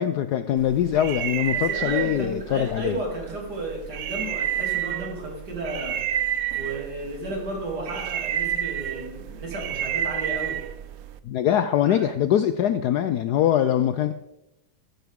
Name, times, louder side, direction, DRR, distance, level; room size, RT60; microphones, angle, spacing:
voice 1, 0.0-3.0 11.2-14.1, left 10 dB, 75° left, 11 dB, 0.9 m, -23 dB
sound 1, 0.6-11.2, right 11 dB, 70° right, 0.8 m, -30 dB
voice 2, 1.5-6.0 6.5-10.6 11.9-12.1, right 2 dB, 55° right, 0 dB, 3.4 m, -33 dB
13.5 x 12.5 x 3.6 m, 0.90 s
omnidirectional pair, 2.2 m